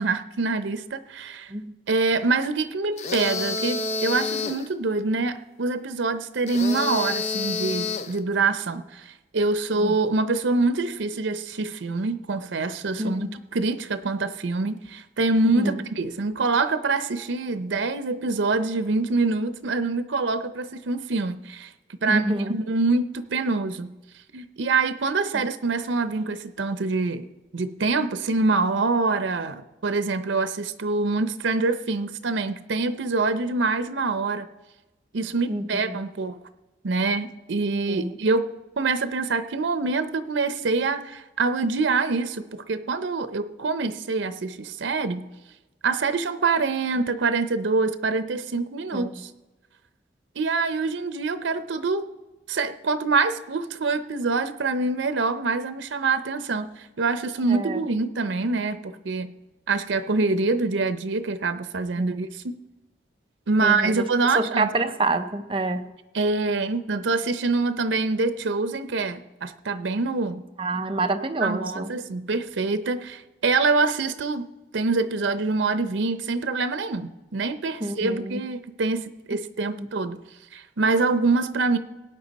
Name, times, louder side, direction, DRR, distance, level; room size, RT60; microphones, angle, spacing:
voice 1, 0.0-1.5 1.9-21.7 22.0-22.2 22.5-23.9 24.3-27.3 27.5-34.5 35.1-36.4 36.8-38.5 38.8-45.3 45.8-49.3 50.4-52.0 52.5-59.3 59.7-62.5 63.5-64.7 66.1-70.4 71.4-74.5 74.7-80.2 80.5-81.8, right 3 dB, 90° right, 11 dB, 0.6 m, -25 dB
sound 1, 3.0-4.7 6.5-8.2, left 4 dB, 35° left, 0.5 m, -28 dB
voice 2, 13.0-13.3 15.4-15.8 22.1-22.5 25.3-25.4 35.5-36.0 37.9-38.1 48.9-49.1 57.5-57.8 62.0-62.2 63.6-64.1 64.3-65.9 70.6-71.9 77.8-78.4 79.8-79.9, right 2 dB, 30° right, 7 dB, 0.6 m, -27 dB
17.5 x 9.1 x 4.1 m, 1.1 s
head